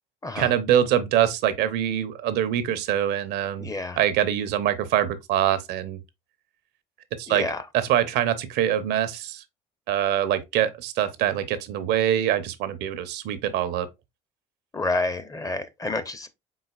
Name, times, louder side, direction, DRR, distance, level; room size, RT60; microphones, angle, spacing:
voice 1, 0.4-3.7 4.0-6.0 7.2-7.5 7.7-9.4 9.9-13.9, right 11 dB, 65° right, 0.6 m, -24 dB
voice 2, 3.6-4.0 7.3-7.6 14.7-16.3, left 2 dB, 20° left, 0.6 m, -29 dB
3.9 x 3.9 x 2.3 m
hypercardioid pair, 70°, 18 cm